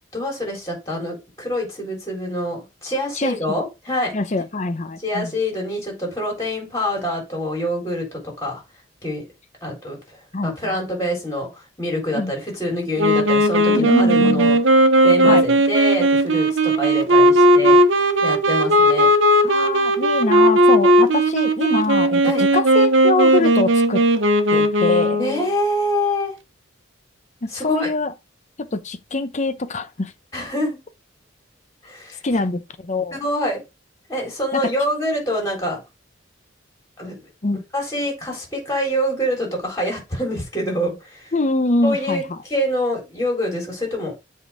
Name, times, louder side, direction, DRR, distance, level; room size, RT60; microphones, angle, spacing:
voice 1, 0.1-4.1 5.0-8.6 9.0-9.2 9.6-14.6 15.0-17.8 18.2-19.1 22.2-22.5 25.2-26.3 27.5-27.9 30.3-30.8 31.8-32.2 33.1-33.6 34.1-35.8 37.0-37.2 37.5-41.3 41.8-42.2 42.5-44.2, equal, 15° left, 3.9 m, -25 dB
voice 2, 3.2-3.7 4.1-5.3 10.3-10.8 12.1-12.3 13.7-14.5 15.2-15.4 19.4-24.0 24.5-25.2 27.4-28.1 28.6-30.1 32.2-33.2 34.5-34.6 37.4-37.6 41.3-42.4, left 2 dB, 40° left, 0.7 m, -24 dB
Wind instrument woodwind instrument, 13.0-25.4, right 1 dB, 75° right, 1.0 m, -16 dB
7.8 x 3.7 x 4.9 m
head